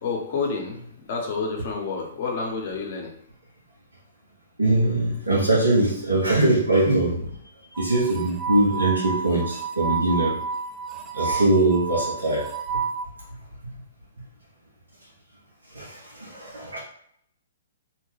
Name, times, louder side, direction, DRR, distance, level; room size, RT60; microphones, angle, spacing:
voice 1, 0.0-3.1, left 4 dB, 50° left, 1 dB, 0.9 m, -29 dB
voice 2, 4.6-7.3 7.8-10.3 11.1-12.5 15.7-16.8, right 2 dB, 90° right, -5 dB, 0.9 m, -22 dB
sound 1, 7.7-13.1, right 5 dB, 20° right, 0.4 m, -30 dB
2.8 x 2.2 x 3.2 m, 0.69 s
figure-of-eight pair, 125°, 0 cm